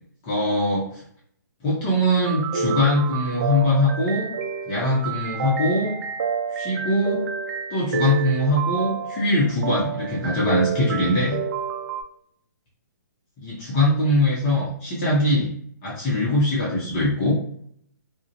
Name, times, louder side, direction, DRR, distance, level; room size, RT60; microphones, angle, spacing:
voice 1, 0.2-1.0 1.6-4.3 4.7-5.9 6.5-7.2 7.7-11.4 13.4-15.5 15.8-17.4, left 1 dB, 25° left, -6 dB, 0.7 m, -22 dB
sound 1, 2.2-12.0, right 6 dB, 60° right, 0.4 m, -29 dB
2.4 x 2.1 x 2.7 m, 0.66 s
hypercardioid pair, 155°, 10 cm